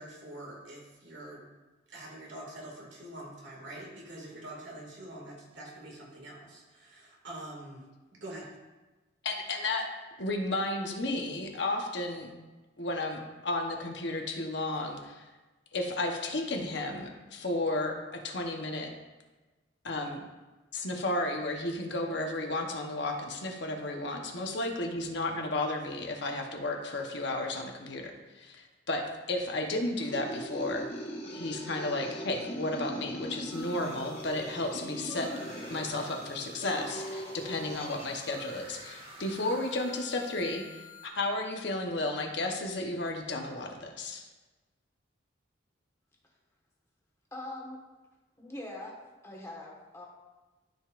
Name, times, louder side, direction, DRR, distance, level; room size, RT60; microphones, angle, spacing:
voice 1, 0.0-1.5 1.9-8.5, right 1 dB, 65° right, -2 dB, 2.2 m, -45 dB
voice 2, 9.2-9.9 10.2-12.3 12.8-15.2 15.7-18.9 19.8-20.2 20.7-30.9 31.3-35.3 35.7-40.7 41.0-44.3, left 2 dB, 60° left, 2 dB, 1.0 m, -33 dB
sound 1, 30.0-38.2, equal, 35° left, 1.0 m, -40 dB
sound 2, 33.5-41.1, equal, 30° right, 1.4 m, -49 dB
voice 3, 47.3-47.8 48.4-48.9 49.2-50.1, left 1 dB, 15° left, -2 dB, 1.5 m, -42 dB
13.0 x 5.3 x 2.5 m, 1.2 s
head